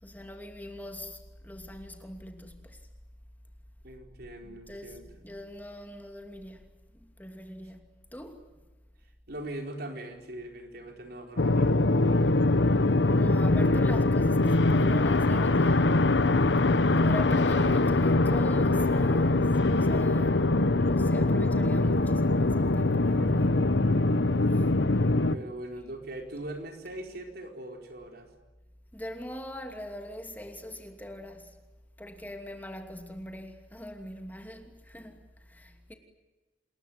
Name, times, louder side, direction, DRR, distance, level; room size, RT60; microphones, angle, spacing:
voice 1, 0.0-2.8 4.4-6.6 6.9-7.8 8.1-8.4 13.1-16.0 16.3-16.4 17.0-20.4 20.8-23.7 24.5-24.7 28.9-31.6 32.0-35.9, left 1 dB, 10° left, 2.7 m, -42 dB
voice 2, 3.8-5.1 9.3-11.8 25.3-28.3, right 1 dB, 60° right, 4.6 m, -41 dB
sound 1, 11.4-25.4, left 2 dB, 85° left, 1.0 m, -23 dB
28.0 x 21.5 x 9.4 m
head